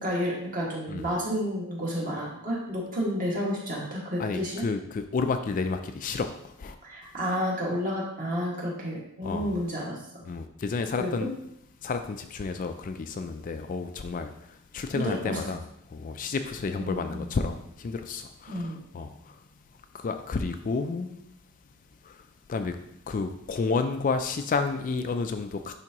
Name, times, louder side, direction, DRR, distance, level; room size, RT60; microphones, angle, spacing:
voice 1, 0.0-4.6 6.8-10.2 11.0-11.3 14.9-15.4 16.7-17.3 18.5-18.8, equal, 40° right, 1.9 m, -31 dB
voice 2, 4.2-6.8 9.2-9.6 10.2-11.3 11.8-19.4 19.9-21.2 22.0-22.8 23.1-25.8, left 4 dB, 35° left, 0.3 m, -31 dB
10.5 x 3.5 x 2.9 m
head